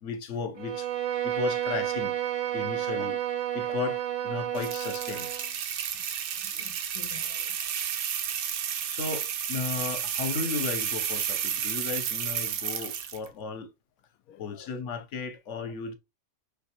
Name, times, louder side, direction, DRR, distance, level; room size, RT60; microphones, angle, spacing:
voice 1, 0.0-2.1 2.5-3.2 3.5-5.3 8.9-13.7 14.4-15.9, left 5 dB, 60° left, 1.1 m, -35 dB
Bowed string instrument, 0.5-5.5, right 11 dB, 45° right, 0.7 m, -31 dB
sound 1, 4.5-13.3, right 9 dB, 85° right, 1.2 m, -32 dB
voice 2, 6.4-7.7 13.3-13.4 14.3-14.9 15.6-15.7, left 12 dB, 85° left, 1.0 m, -51 dB
5.6 x 3.2 x 2.9 m
omnidirectional pair, 1.5 m